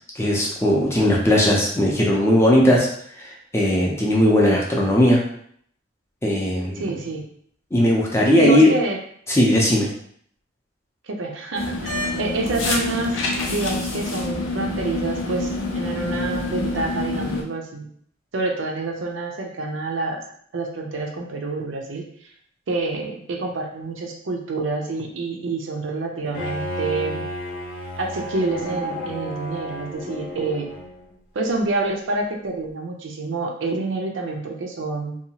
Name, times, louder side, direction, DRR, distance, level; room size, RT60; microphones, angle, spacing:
voice 1, 0.2-2.9 3.5-5.2 6.2-6.9 7.7-8.7 9.3-9.9, left 1 dB, 15° left, -3 dB, 0.5 m, -18 dB
voice 2, 6.8-7.2 8.1-9.0 11.0-13.2 13.5-15.5 15.7-17.9 18.3-20.2 20.5-22.1 22.7-27.2 28.0-30.7 31.3-35.2, right 3 dB, 65° right, 2 dB, 0.5 m, -27 dB
sound 1, 11.5-17.4, left 2 dB, 80° left, 0.6 m, -27 dB
Bowed string instrument, 26.3-31.1, left 1 dB, 50° left, 0.8 m, -32 dB
2.7 x 2.3 x 2.8 m, 0.63 s
head